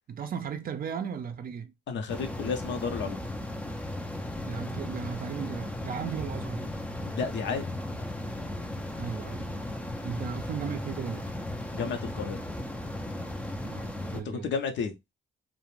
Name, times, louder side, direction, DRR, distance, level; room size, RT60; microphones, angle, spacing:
voice 1, 0.1-1.7 4.4-6.7 8.9-9.6 10.0-11.3 13.6-14.5, right 7 dB, 45° right, 0.5 m, -36 dB
voice 2, 1.9-3.2 7.1-7.7 11.7-12.4 14.2-14.9, left 5 dB, 65° left, 0.6 m, -32 dB
sound 1, 2.1-14.2, left 1 dB, 5° left, 0.4 m, -36 dB
2.4 x 2.1 x 3.0 m
cardioid pair, 90°, 20 cm